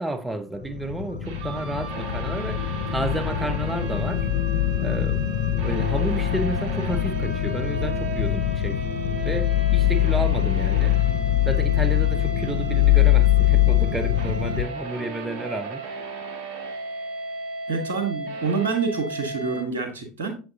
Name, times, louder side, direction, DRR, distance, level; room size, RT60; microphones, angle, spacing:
voice 1, 0.0-4.3 4.8-5.2 5.6-8.8 9.2-11.0 11.4-15.8, right 2 dB, 10° right, 0.9 m, -31 dB
sound 1, 0.6-14.6, left 12 dB, 70° left, 0.6 m, -23 dB
sound 2, 1.2-19.6, right 3 dB, 60° right, 1.1 m, -35 dB
voice 2, 17.7-20.3, right 4 dB, 75° right, 1.3 m, -27 dB
7.3 x 5.9 x 2.7 m
figure-of-eight pair, 70°, 0 cm